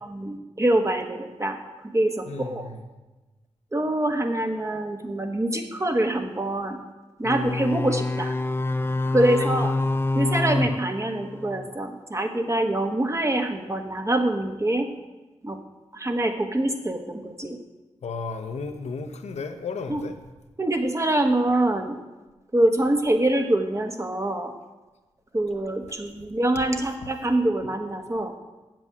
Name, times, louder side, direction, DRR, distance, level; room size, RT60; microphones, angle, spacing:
voice 1, 0.0-1.6 1.9-2.7 3.7-6.8 7.2-8.3 9.1-9.7 10.1-14.9 15.4-15.6 15.9-17.6 19.9-20.0 20.6-22.0 22.5-24.5 25.3-28.3, right 1 dB, 25° right, 4 dB, 1.4 m, -25 dB
voice 2, 2.3-2.8 9.2-9.8 18.0-20.2, left 4 dB, 80° left, 7 dB, 0.9 m, -34 dB
sound 1, 7.2-11.7, left 2 dB, 20° left, 0.5 m, -26 dB
7.9 x 7.7 x 6.1 m, 1.1 s
cardioid pair, 50°, 11 cm